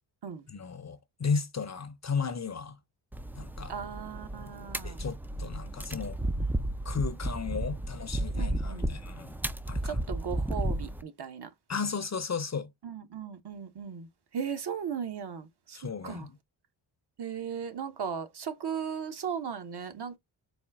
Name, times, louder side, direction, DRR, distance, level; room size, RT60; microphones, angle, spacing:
voice 1, 0.5-2.8 3.4-3.7 4.5-4.6 4.8-6.2 6.8-9.3 9.7-10.0 11.7-12.7 15.7-16.4, left 5 dB, 35° left, 0.7 m, -34 dB
sound 1, 3.1-11.0, right 1 dB, 5° right, 0.4 m, -33 dB
voice 2, 3.7-5.0 8.3-8.9 9.8-11.5 12.8-14.1 14.3-15.8 16.0-16.3 17.2-20.2, right 7 dB, 50° right, 1.1 m, -37 dB
4.1 x 2.2 x 3.5 m
cardioid pair, 60°, 50 cm